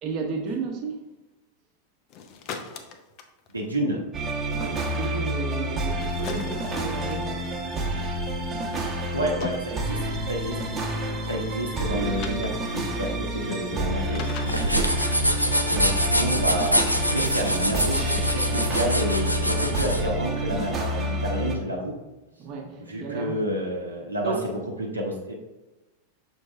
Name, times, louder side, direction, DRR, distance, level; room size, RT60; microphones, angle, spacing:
voice 1, 0.0-1.0 4.5-7.5 22.4-23.4 24.2-24.4, right 4 dB, 35° right, 0 dB, 1.0 m, -33 dB
sound 1, 2.1-3.7 6.1-7.2 9.1-9.7 12.2-12.5 14.1-15.1, left 6 dB, 40° left, 0.6 m, -38 dB
voice 2, 3.5-4.0 9.1-10.0 10.3-10.6 11.2-14.8 15.7-21.9 22.9-24.3 24.8-25.3, equal, 85° right, -1 dB, 0.9 m, -29 dB
sound 2, 4.1-21.6, right 1 dB, 20° right, 1.1 m, -29 dB
sound 3, 14.4-20.0, equal, 90° left, 0.5 m, -25 dB
6.4 x 4.5 x 3.3 m, 1.1 s
figure-of-eight pair, 90°, 0 cm